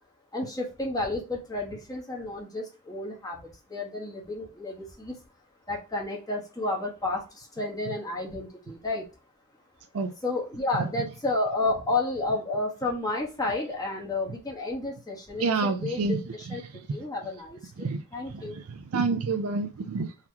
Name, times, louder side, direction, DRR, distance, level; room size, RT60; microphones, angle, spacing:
voice 1, 0.3-5.2 5.7-9.1 10.2-16.6 16.9-18.6, left 2 dB, 15° left, 1.2 m, -31 dB
voice 2, 15.4-16.2 17.8-18.0 18.3-18.4 18.9-20.1, right 4 dB, 75° right, 0.5 m, -27 dB
4.1 x 2.9 x 2.8 m
head